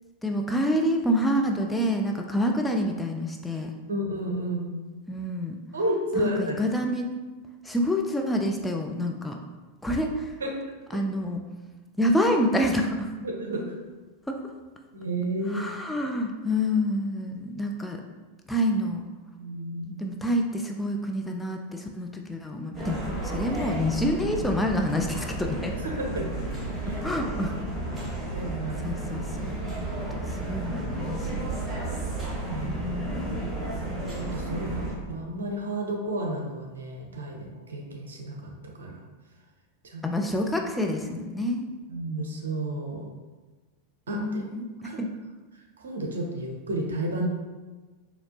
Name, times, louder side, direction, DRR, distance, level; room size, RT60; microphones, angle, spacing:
voice 1, 0.2-3.7 5.1-5.6 6.2-7.1 7.6-9.4 9.8-10.3 10.9-11.4 12.0-13.1 14.3-14.5 15.5-18.0 18.5-19.0 20.0-25.7 26.9-27.6 28.8-31.3 32.6-33.4 40.0-41.7 44.1-45.1, equal, 5° left, 2 dB, 0.3 m, -27 dB
voice 2, 3.9-4.7 5.7-6.6 10.4-10.6 13.2-13.7 14.9-15.7 19.4-19.9 25.8-26.3 26.8-27.0 28.2-28.8 32.5-32.8 33.8-34.8 35.1-38.5 38.8-38.9 39.8-40.0 41.9-43.0 44.1-44.4 44.8-45.0 45.8-47.3, right 1 dB, 65° right, 1 dB, 0.7 m, -31 dB
sound 1, 22.7-34.9, right 2 dB, 10° right, 1.0 m, -32 dB
4.1 x 2.8 x 2.7 m, 1.2 s
figure-of-eight pair, 90°, 0 cm